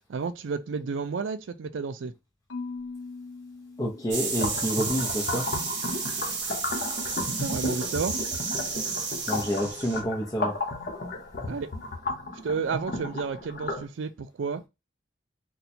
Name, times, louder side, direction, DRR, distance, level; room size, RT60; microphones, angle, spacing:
voice 1, 0.1-2.1 7.4-8.2 11.5-11.7 12.4-14.7, right 5 dB, 85° right, 0.4 m, -31 dB
Marimba xylophone / Wood, 2.5-4.7, left 3 dB, 80° left, 0.7 m, -40 dB
voice 2, 3.8-5.5 9.3-10.6, equal, 20° left, 0.5 m, -28 dB
sound 1, 4.1-10.0, right 4 dB, 65° right, 0.9 m, -32 dB
sound 2, 4.3-13.9, left 2 dB, 50° left, 0.8 m, -33 dB
2.8 x 2.2 x 4.1 m
head